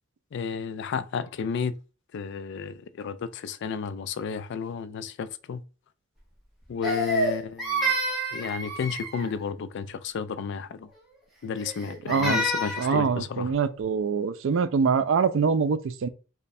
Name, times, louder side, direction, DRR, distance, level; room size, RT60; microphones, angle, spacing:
voice 1, 0.3-1.7 2.1-5.6 6.7-7.9 8.3-10.9 11.4-13.5, left 6 dB, 60° left, 0.3 m, -32 dB
Crying sobbing, 6.8-9.3 11.6-13.0, right 1 dB, ahead, 1.1 m, -28 dB
voice 2, 12.1-12.4 12.8-16.1, right 5 dB, 65° right, 0.4 m, -24 dB
3.2 x 2.2 x 4.1 m
head